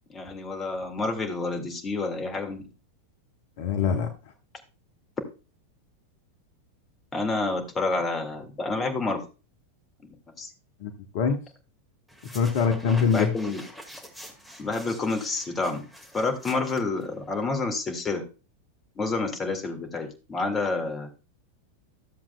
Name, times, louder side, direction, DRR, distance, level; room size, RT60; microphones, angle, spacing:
voice 1, 0.1-2.6 7.1-9.2 10.0-10.5 13.1-13.6 14.6-15.8 16.1-18.2 19.0-21.1, left 3 dB, 20° left, 4 dB, 1.9 m, -29 dB
voice 2, 3.6-4.1 10.8-11.4 12.3-13.3, left 6 dB, 50° left, 6 dB, 0.9 m, -24 dB
sound 1, 12.1-17.4, equal, ahead, 1.8 m, -45 dB
13.5 x 7.2 x 2.3 m, 0.31 s
figure-of-eight pair, 90°, 0 cm